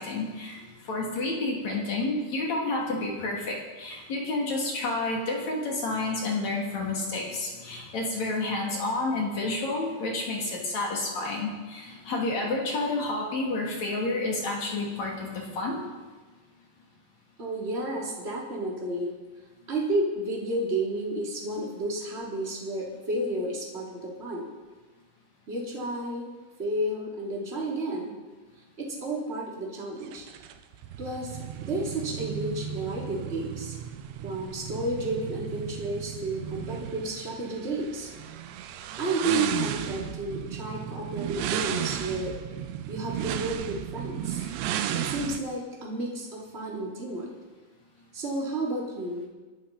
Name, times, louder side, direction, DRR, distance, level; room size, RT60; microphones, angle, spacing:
voice 1, 0.0-15.8, left 2 dB, 45° left, -2 dB, 3.8 m, -30 dB
voice 2, 17.4-19.1 19.7-24.5 25.5-26.3 26.6-28.2 28.8-30.2 31.0-33.7 34.2-38.1 39.0-42.3 42.9-44.4 44.9-47.3 48.1-49.3, right 1 dB, 15° right, -3 dB, 2.9 m, -31 dB
sound 1, 30.0-45.4, right 10 dB, 90° right, 3.0 m, -34 dB
23.5 x 13.5 x 4.3 m, 1.3 s
omnidirectional pair, 4.8 m